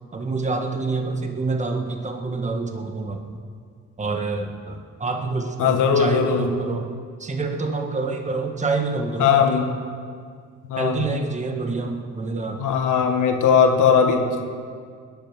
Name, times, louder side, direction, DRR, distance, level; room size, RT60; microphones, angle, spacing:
voice 1, 0.1-3.4 4.0-6.9 7.2-9.7 10.8-12.6, right 3 dB, 25° right, 3 dB, 1.7 m, -27 dB
voice 2, 5.6-6.5 9.2-9.7 10.7-11.0 12.6-14.4, left 6 dB, 80° left, 4 dB, 1.8 m, -19 dB
20.0 x 11.0 x 6.0 m, 2.1 s
cardioid pair, 90°, 30 cm